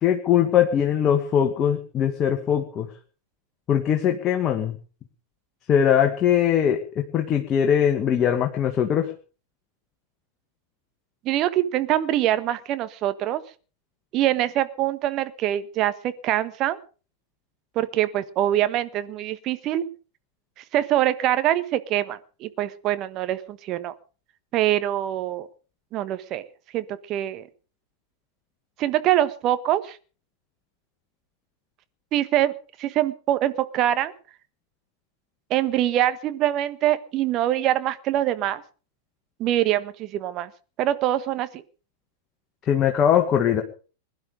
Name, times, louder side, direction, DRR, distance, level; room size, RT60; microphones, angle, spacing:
voice 1, 0.0-2.9 3.7-4.8 5.7-9.1 42.7-43.6, left 9 dB, 30° left, 4 dB, 2.0 m, -21 dB
voice 2, 11.2-13.4 14.1-16.8 17.7-19.8 20.7-23.9 24.5-25.5 25.9-26.4 26.7-27.4 28.8-30.0 32.1-32.5 32.8-34.1 35.5-38.6 39.4-40.5 40.8-41.5, right 13 dB, 40° right, 13 dB, 1.4 m, -24 dB
21.0 x 11.5 x 5.2 m, 0.38 s
figure-of-eight pair, 95°, 0 cm